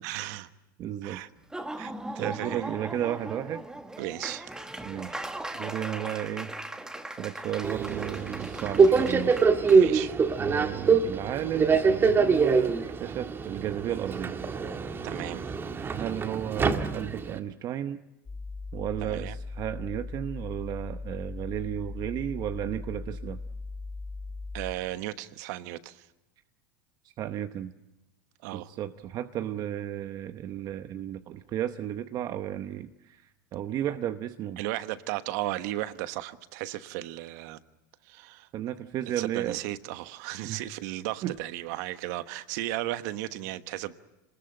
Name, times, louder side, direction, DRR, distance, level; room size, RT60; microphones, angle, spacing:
voice 1, 0.0-0.5 1.0-1.3 1.8-2.6 4.0-4.5 9.7-10.1 15.0-15.5 19.0-19.3 24.5-26.1 28.4-28.7 34.6-37.6 38.0-38.5 39.2-43.9, right 15 dB, 65° right, 12 dB, 1.2 m, -35 dB
voice 2, 0.8-1.2 2.2-3.6 4.8-5.2 5.6-6.5 7.2-9.4 9.6-9.7 10.4-14.4 15.9-18.0 18.7-23.4 27.2-27.7 28.5-34.6 38.5-39.6 40.4-40.7 41.2-41.3, right 11 dB, 40° right, 9 dB, 0.9 m, -33 dB
Laughter / Applause, 1.4-9.8, right 1 dB, 5° right, 1.6 m, -39 dB
Subway metro underground, 7.6-17.4, right 5 dB, 20° right, 1.6 m, -24 dB
sound 1, 18.3-24.7, left 3 dB, 20° left, 1.2 m, -38 dB
26.5 x 20.5 x 9.0 m, 0.98 s
supercardioid pair, 125°, 10 cm